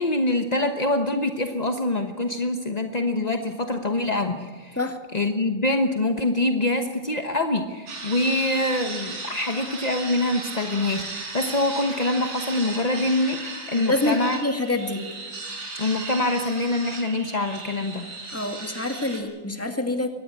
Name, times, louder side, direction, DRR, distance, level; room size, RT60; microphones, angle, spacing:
voice 1, 0.0-4.8 5.1-14.4 15.8-18.1, left 2 dB, 35° left, 5 dB, 0.7 m, -25 dB
sound 1, 7.9-19.2, right 3 dB, 80° right, 5.2 m, -36 dB
voice 2, 13.7-15.0 18.3-20.1, left 2 dB, 5° left, 5 dB, 1.8 m, -26 dB
23.0 x 19.0 x 8.6 m, 1.4 s
omnidirectional pair, 2.4 m